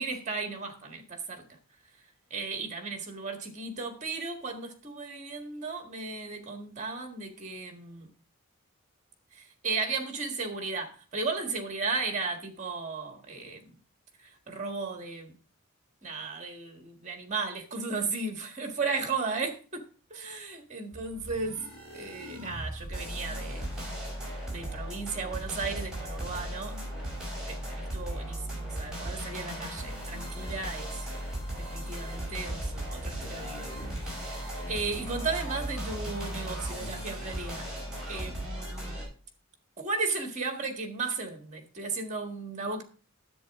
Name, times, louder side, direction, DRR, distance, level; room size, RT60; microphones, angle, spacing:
voice 1, 0.0-1.4 2.3-8.1 9.3-13.8 14.2-15.3 16.0-19.6 20.1-21.6 21.9-23.6 24.5-26.8 27.4-31.1 31.7-33.7 34.0-37.7 38.1-39.0 39.8-42.8, right 4 dB, 35° right, 1.6 m, -35 dB
sound 1, 20.9-39.0, right 1 dB, 5° right, 6.0 m, -37 dB
10.0 x 8.2 x 3.6 m
head